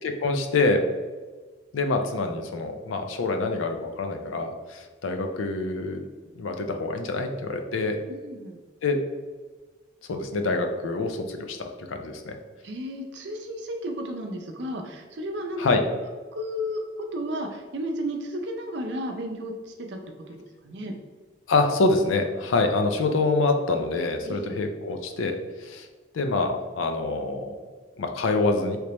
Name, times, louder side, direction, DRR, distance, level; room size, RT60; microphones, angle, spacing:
voice 1, 0.0-0.8 1.7-6.0 6.4-8.0 8.8-9.0 10.1-12.4 15.6-15.8 21.5-25.9 26.1-27.6 28.0-28.8, left 3 dB, 80° left, 5 dB, 0.4 m, -26 dB
voice 2, 8.0-8.6 12.6-15.6 16.3-20.0 20.3-20.4 20.6-21.0 24.2-24.6, equal, 60° right, 3 dB, 0.5 m, -33 dB
3.2 x 3.0 x 2.9 m, 1.4 s
head